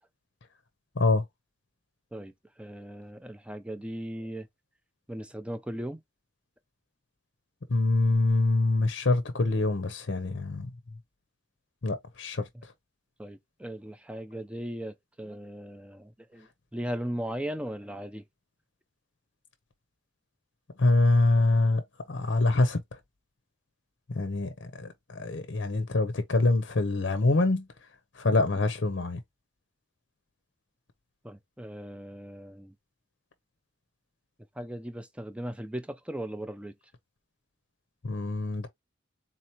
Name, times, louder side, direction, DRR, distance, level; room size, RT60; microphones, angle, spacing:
voice 1, 0.9-1.2 7.7-10.7 11.8-12.7 20.8-23.0 24.1-27.9 28.1-29.2 38.0-38.7, left 2 dB, 60° left, 0.7 m, -25 dB
voice 2, 2.6-4.5 5.1-6.0 13.2-16.5 16.7-18.2 31.2-32.7 34.6-36.7, right 1 dB, 5° right, 0.5 m, -37 dB
4.0 x 2.8 x 2.8 m
head